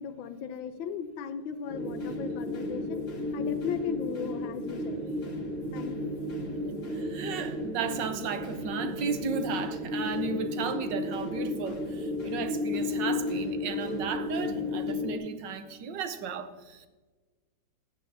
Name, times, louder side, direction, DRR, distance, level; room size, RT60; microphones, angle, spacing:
voice 1, 0.0-3.0 3.3-5.0 5.7-6.2, left 7 dB, 80° left, 11 dB, 1.4 m, -37 dB
sound 1, 1.7-15.2, left 2 dB, 85° right, 2.1 m, -33 dB
sound 2, 1.8-14.9, left 2 dB, 35° left, 1.3 m, -52 dB
voice 2, 6.9-16.9, right 6 dB, 70° right, 9 dB, 1.3 m, -34 dB
14.0 x 8.9 x 2.7 m, 1.3 s
omnidirectional pair, 2.1 m